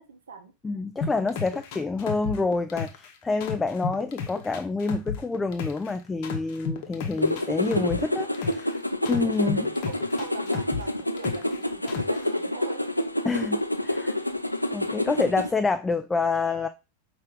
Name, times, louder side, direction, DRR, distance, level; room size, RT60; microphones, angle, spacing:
voice 1, 0.0-0.5 9.1-12.9, right 5 dB, 65° right, 0.6 m, -41 dB
voice 2, 0.6-8.8 9.1-9.7 13.3-14.2 14.7-16.7, left 3 dB, 10° left, 0.3 m, -27 dB
sound 1, 1.0-3.1 3.4-5.9 6.2-8.7 9.0-11.6 11.9-12.2, left 6 dB, 45° left, 0.9 m, -32 dB
sound 2, 7.2-15.5, left 1 dB, 85° left, 0.4 m, -28 dB
5.2 x 2.5 x 3.7 m
figure-of-eight pair, 90°, 0 cm